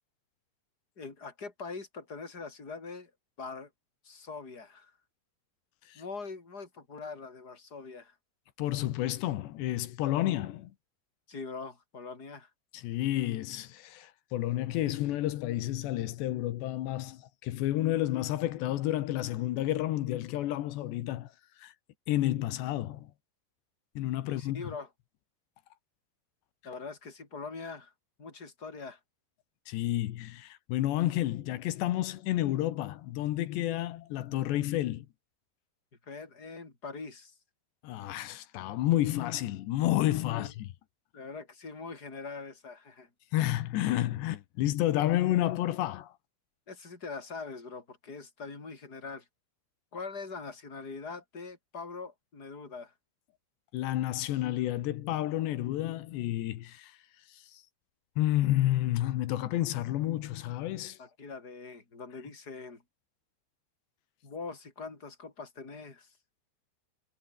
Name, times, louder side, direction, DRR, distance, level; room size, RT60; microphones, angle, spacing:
voice 1, 1.0-3.1 3.4-3.7 4.0-4.9 5.9-8.2 11.3-12.5 24.2-24.9 26.6-27.9 28.2-29.0 36.1-37.3 40.3-40.5 41.1-43.1 46.7-49.3 49.9-52.9 61.0-62.8 64.2-66.1, left 4 dB, 20° left, 5.7 m, -42 dB
voice 2, 8.6-10.7 12.7-21.3 21.6-21.7 22.1-23.1 24.0-24.6 29.7-35.1 37.8-40.7 43.3-46.1 53.7-56.9 57.5-57.6 58.2-61.0, left 14 dB, 70° left, 3.2 m, -30 dB
omnidirectional pair, 5.6 m